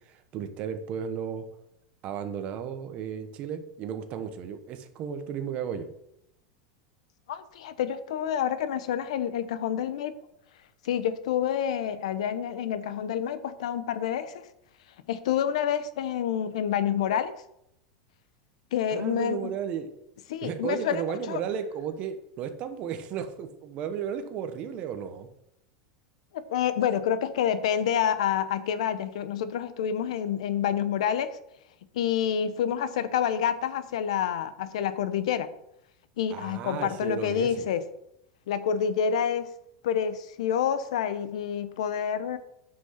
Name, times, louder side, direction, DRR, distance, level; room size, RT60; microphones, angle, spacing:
voice 1, 0.1-1.4 2.0-5.9 18.9-19.9 20.4-25.3 36.3-37.7, right 8 dB, 35° right, 8 dB, 1.2 m, -34 dB
voice 2, 7.3-10.1 10.8-14.5 15.1-17.3 18.7-19.5 20.3-21.4 26.3-31.4 31.9-35.5 36.2-37.8 38.5-39.5 39.8-42.4, left 8 dB, 80° left, 13 dB, 1.0 m, -28 dB
9.6 x 5.9 x 5.8 m, 0.79 s
supercardioid pair, 155°, 3 cm